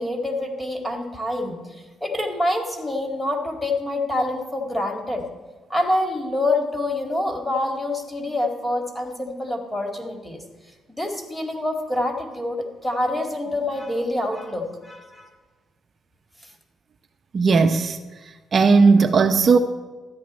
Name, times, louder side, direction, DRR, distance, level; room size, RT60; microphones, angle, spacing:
voice 1, 0.0-1.6 2.0-5.3 5.7-10.4 10.9-15.3, left 1 dB, 10° left, 3 dB, 2.2 m, -26 dB
voice 2, 17.3-18.0 18.5-19.6, right 4 dB, 45° right, 6 dB, 0.6 m, -16 dB
13.0 x 9.9 x 4.3 m, 1.3 s
cardioid pair, 90°, 0 cm